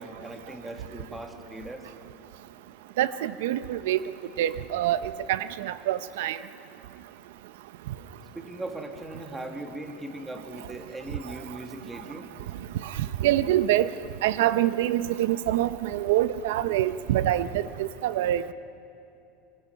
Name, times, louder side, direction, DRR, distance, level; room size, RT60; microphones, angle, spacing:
voice 1, 0.0-1.9 8.3-12.3, right 1 dB, 5° right, 5 dB, 1.3 m, -39 dB
voice 2, 3.0-4.0 4.4-6.4 12.8-13.9 14.2-18.5, right 13 dB, 90° right, 15 dB, 0.5 m, -25 dB
24.5 x 21.5 x 5.3 m, 2.7 s
cardioid pair, 175°, 0 cm